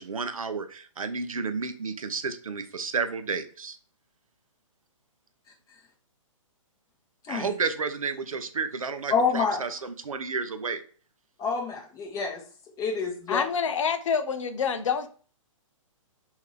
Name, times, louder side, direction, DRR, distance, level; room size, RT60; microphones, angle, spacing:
voice 1, 0.0-3.8 7.3-10.8, right 5 dB, 85° right, 0.5 m, -31 dB
voice 2, 9.1-9.6 11.4-12.4 12.8-13.4, left 5 dB, 20° left, 1.1 m, -27 dB
voice 3, 13.3-15.1, left 6 dB, 65° left, 0.6 m, -27 dB
3.6 x 2.6 x 3.3 m
figure-of-eight pair, 125°, 17 cm